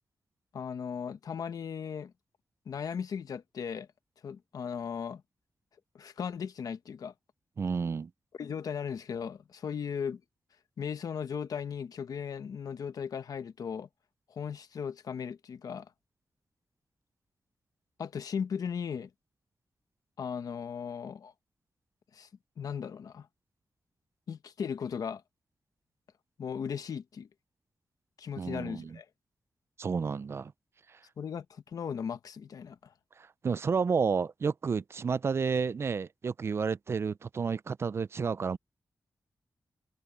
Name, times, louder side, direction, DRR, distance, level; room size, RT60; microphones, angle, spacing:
voice 1, 0.5-2.1 2.7-3.9 4.2-5.2 5.9-7.1 8.4-10.2 10.8-13.9 14.3-15.9 18.0-19.1 20.2-21.3 22.1-22.3 22.6-23.3 24.3-25.2 26.4-27.3 28.2-29.1 31.2-32.9, left 7 dB, 75° left, 1.1 m, -37 dB
voice 2, 7.6-8.1 28.4-29.0 29.8-30.5 33.2-38.6, right 5 dB, 40° right, 0.4 m, -31 dB
wide cardioid pair, 155°, 6 cm